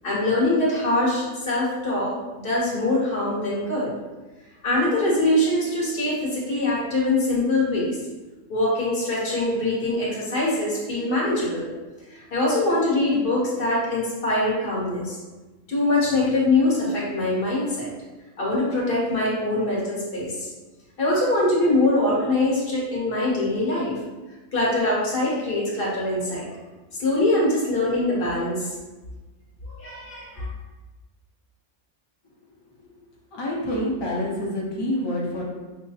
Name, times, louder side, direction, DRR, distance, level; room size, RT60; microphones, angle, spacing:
voice 1, 0.0-3.9 4.6-8.0 8.5-11.7 12.1-15.2 15.7-17.9 18.4-20.5 21.0-23.9 24.5-26.5 27.0-28.7 29.7-30.5, left 2 dB, 45° left, -5 dB, 1.1 m, -23 dB
voice 2, 33.3-35.4, left 1 dB, 25° left, -4 dB, 0.6 m, -27 dB
5.5 x 2.1 x 2.8 m, 1.2 s
omnidirectional pair, 1.5 m